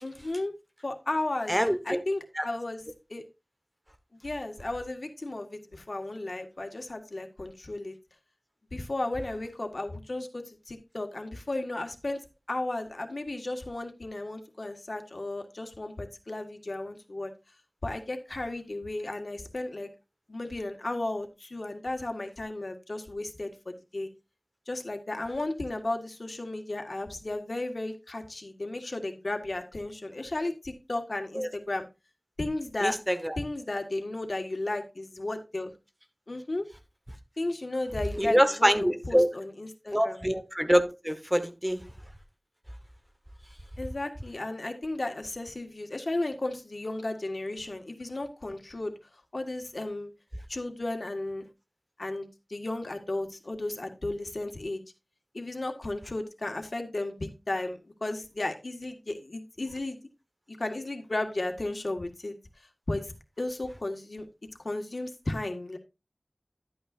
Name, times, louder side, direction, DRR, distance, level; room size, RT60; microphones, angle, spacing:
voice 1, 0.0-0.5 0.8-1.5 1.8-2.8 3.1-3.2 4.2-7.9 8.7-12.2 12.5-17.3 17.8-19.9 20.3-24.1 24.7-31.9 32.4-33.0 33.4-35.7 36.3-36.7 37.4-40.2 43.8-48.9 49.3-50.1 50.5-51.4 52.0-54.8 55.3-60.0 60.5-62.4 62.9-64.3 64.6-65.8, left 2 dB, 80° left, 5 dB, 1.5 m, -34 dB
voice 2, 1.5-2.0 2.3-2.5 31.3-31.5 32.8-33.4 38.2-39.3 39.9-41.9, equal, 10° right, 9 dB, 1.2 m, -25 dB
12.0 x 8.7 x 2.5 m, 0.26 s
wide cardioid pair, 40°, 0 cm